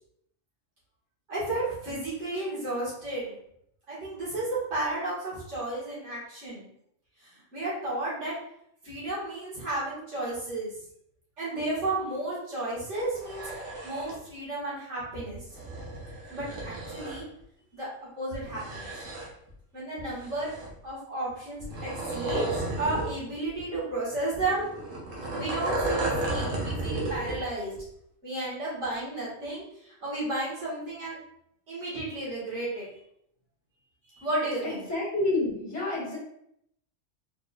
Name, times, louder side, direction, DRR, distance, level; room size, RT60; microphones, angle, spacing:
voice 1, 1.3-3.3 3.9-6.7 7.2-8.3 8.8-10.7 11.4-13.4 13.8-15.4 16.3-17.3 17.7-18.9 19.7-20.5 20.8-24.7 25.3-27.7 28.2-31.2 31.7-32.9 34.1-34.8, right 2 dB, 65° right, -8 dB, 2.2 m, -33 dB
sound 1, 13.0-14.2 15.3-17.2 18.3-19.5 20.0-20.9 21.6-23.1 23.5-23.6 24.3-27.4 27.8-27.9, right 2 dB, 80° right, 1.5 m, -33 dB
voice 2, 34.6-36.2, left 2 dB, 15° left, -6 dB, 1.4 m, -29 dB
4.1 x 4.0 x 2.5 m, 0.74 s
omnidirectional pair, 1.3 m